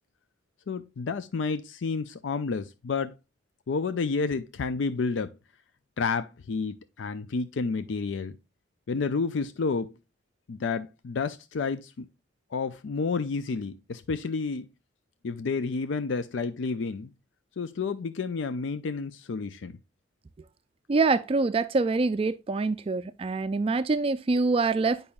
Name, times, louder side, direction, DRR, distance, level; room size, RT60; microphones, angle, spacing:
voice 1, 0.7-3.1 3.7-5.3 6.0-8.4 8.9-9.9 10.5-12.1 12.5-14.7 15.2-17.1 17.6-19.8, left 4 dB, 80° left, 0.5 m, -30 dB
voice 2, 20.9-25.1, right 3 dB, 30° right, 0.3 m, -25 dB
8.6 x 5.4 x 2.2 m
head